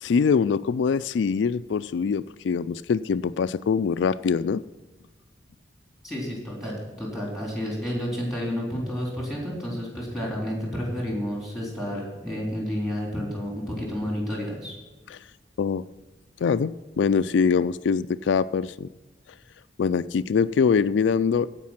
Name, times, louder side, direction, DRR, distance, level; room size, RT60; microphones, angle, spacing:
voice 1, 0.0-4.6 15.1-15.2 15.6-15.8 16.4-18.9 19.8-21.5, left 6 dB, 85° left, 13 dB, 0.4 m, -23 dB
voice 2, 6.0-6.7 7.0-14.8, equal, ahead, -3 dB, 3.6 m, -30 dB
16.0 x 5.3 x 5.8 m, 1.2 s
head